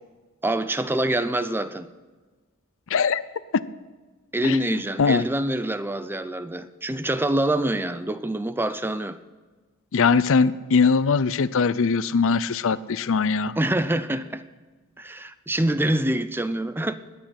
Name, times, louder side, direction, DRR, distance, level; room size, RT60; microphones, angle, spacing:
voice 1, 0.4-1.9 4.3-9.2 13.6-14.4 15.0-16.9, right 1 dB, 10° right, 0.5 m, -25 dB
voice 2, 2.9-3.2 3.5-3.6 4.4-4.6 5.0-5.2 9.9-13.5, left 5 dB, 65° left, 0.5 m, -21 dB
20.5 x 9.0 x 5.9 m
head